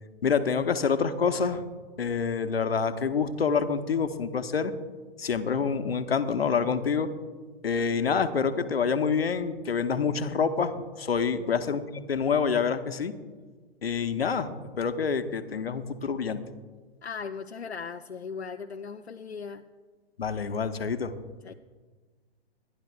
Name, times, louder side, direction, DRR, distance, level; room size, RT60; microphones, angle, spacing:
voice 1, 0.2-1.7 2.0-4.7 5.2-7.1 7.6-13.1 13.8-16.4 20.2-21.1, left 6 dB, 70° left, 10 dB, 0.9 m, -27 dB
voice 2, 17.0-19.7 21.4-21.5, left 5 dB, 90° left, 7 dB, 0.5 m, -38 dB
23.5 x 10.5 x 2.3 m, 1.4 s
figure-of-eight pair, 120°, 32 cm